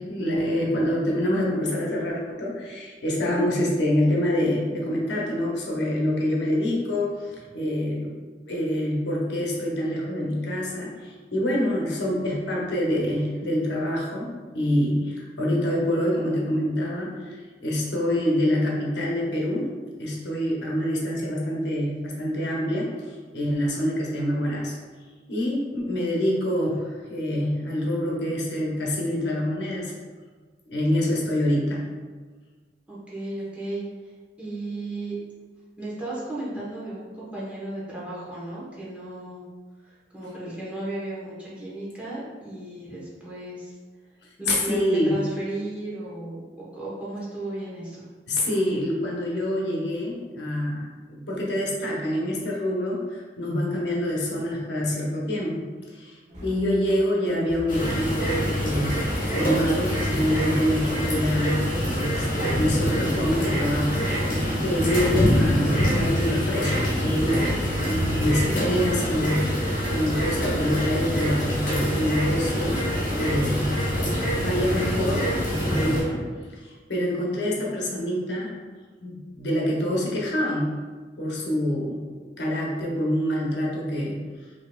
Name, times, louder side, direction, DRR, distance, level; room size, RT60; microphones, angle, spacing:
voice 1, 0.0-8.1 8.5-24.8 25.3-29.9 30.7-31.9 44.5-45.2 48.3-61.7 62.0-67.6 67.8-72.8 73.2-75.3 75.6-76.3 76.5-78.5 79.0-80.8 81.2-82.1 82.4-84.3, left 1 dB, 80° left, -3 dB, 0.8 m, -26 dB
voice 2, 32.9-33.9 34.4-35.1 35.8-39.4 39.8-43.7 44.4-44.8 45.1-48.1, right 2 dB, 5° right, -8 dB, 1.0 m, -35 dB
sound 1, 56.3-61.3, equal, 45° right, 1.0 m, -39 dB
sound 2, 57.7-76.0, equal, 50° left, 1.5 m, -25 dB
5.0 x 2.8 x 2.3 m, 1.4 s
head